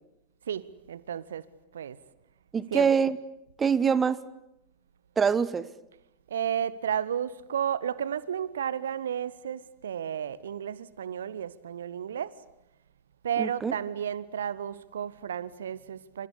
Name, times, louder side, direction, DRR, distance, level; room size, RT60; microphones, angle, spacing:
voice 1, 0.5-1.4 1.7-2.0 2.7-2.9 6.3-12.3 13.2-16.3, right 9 dB, 65° right, 1.0 m, -32 dB
voice 2, 2.5-3.2 3.6-4.2 5.2-5.7 13.4-13.7, right 6 dB, 20° right, 1.1 m, -24 dB
26.5 x 26.0 x 8.3 m
figure-of-eight pair, 90°, 0 cm